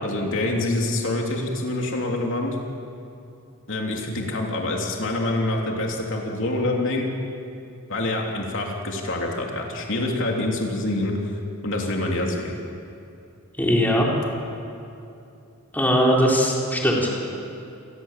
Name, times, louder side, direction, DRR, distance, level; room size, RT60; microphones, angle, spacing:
voice 1, 0.0-2.6 3.7-7.1 7.9-11.2 11.6-12.6, left 2 dB, 60° left, 0 dB, 3.2 m, -26 dB
voice 2, 13.6-14.1 15.7-17.2, equal, 10° left, -3 dB, 4.1 m, -20 dB
29.0 x 21.5 x 7.5 m, 2.6 s
head